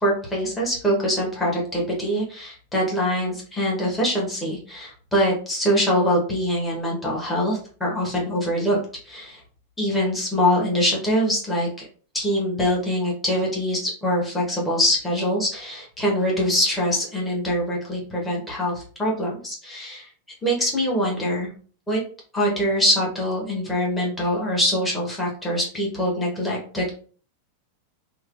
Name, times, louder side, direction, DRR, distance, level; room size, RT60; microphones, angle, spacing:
voice 1, 0.0-8.8 9.1-9.4 9.8-11.9 12.1-20.1 20.4-21.5 21.9-22.0 22.3-27.0, equal, 10° left, -4 dB, 1.2 m, -24 dB
3.1 x 2.1 x 2.4 m, 0.42 s
figure-of-eight pair, 90°, 0 cm